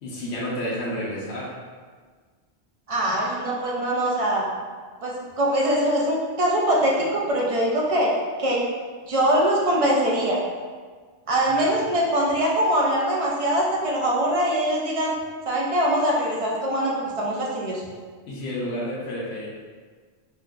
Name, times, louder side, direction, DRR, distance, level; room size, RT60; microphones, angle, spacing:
voice 1, 0.0-1.5 11.5-11.7 18.3-19.5, equal, 70° left, -6 dB, 0.9 m, -30 dB
voice 2, 2.9-4.4 5.0-8.1 8.4-8.6 9.1-10.4 11.3-15.1 15.5-17.8, right 1 dB, 50° right, -3 dB, 0.4 m, -23 dB
3.6 x 2.6 x 2.4 m, 1.5 s
omnidirectional pair, 1.2 m